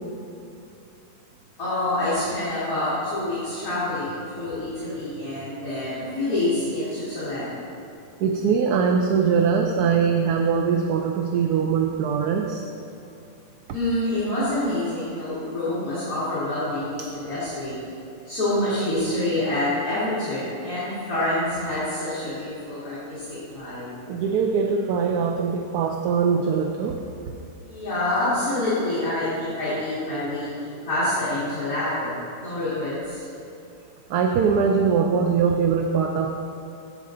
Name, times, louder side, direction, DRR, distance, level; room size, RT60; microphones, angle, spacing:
voice 1, 1.6-7.6 13.7-17.8 18.2-23.2 23.5-23.9 27.7-33.2, left 1 dB, 50° left, -14 dB, 2.9 m, -27 dB
voice 2, 8.2-12.7 17.0-17.1 24.1-27.0 34.1-36.4, right 6 dB, 70° right, 4 dB, 1.0 m, -22 dB
9.8 x 7.9 x 3.8 m, 2.8 s
omnidirectional pair, 1.9 m